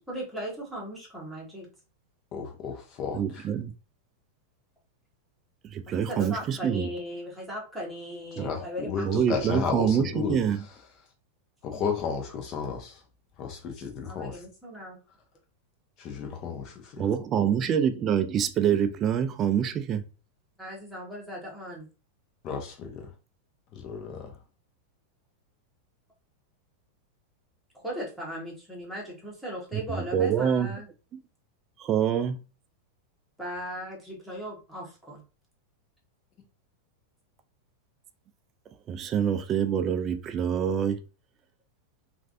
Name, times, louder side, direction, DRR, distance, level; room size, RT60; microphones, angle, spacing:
voice 1, 0.1-1.7 5.9-10.1 14.0-15.0 20.6-21.9 27.7-30.9 33.4-35.2, equal, ahead, 1.2 m, -38 dB
voice 2, 2.3-3.5 8.4-10.4 11.6-13.0 13.4-14.4 16.0-17.0 22.4-23.0 23.7-24.3, left 6 dB, 35° left, 0.9 m, -33 dB
voice 3, 3.1-3.7 5.7-6.9 8.4-8.5 9.0-10.6 17.0-20.0 29.7-30.7 31.8-32.4 38.9-41.0, right 8 dB, 30° right, 0.3 m, -26 dB
3.2 x 2.5 x 2.5 m
supercardioid pair, 140°, 0 cm